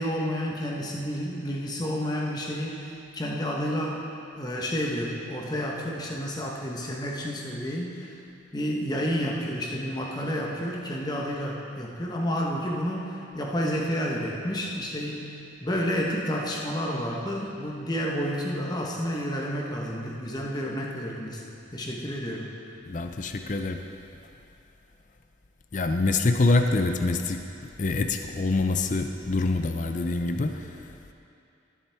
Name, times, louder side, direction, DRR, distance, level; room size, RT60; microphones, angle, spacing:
voice 1, 0.0-4.0 4.4-8.1 8.5-15.3 15.6-21.4 21.7-22.5, equal, 20° left, -2 dB, 1.1 m, -30 dB
voice 2, 22.9-23.8 25.7-31.1, left 3 dB, 40° left, 5 dB, 0.5 m, -26 dB
19.0 x 7.4 x 3.5 m, 2.7 s
head